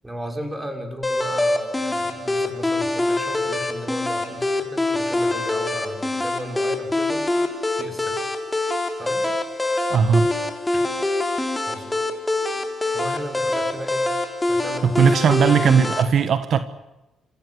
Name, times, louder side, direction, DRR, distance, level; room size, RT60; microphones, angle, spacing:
voice 1, 0.0-7.3 7.8-8.1 9.0-9.2 10.7-10.8 11.7-12.0 12.9-14.1 14.5-16.0, equal, 10° right, 4 dB, 6.4 m, -35 dB
sound 1, 1.0-16.0, left 2 dB, 15° left, 3.4 m, -24 dB
voice 2, 9.9-10.3 14.8-16.6, right 6 dB, 60° right, 11 dB, 1.4 m, -18 dB
26.5 x 16.0 x 9.7 m, 1.0 s
cardioid pair, 90°, 0 cm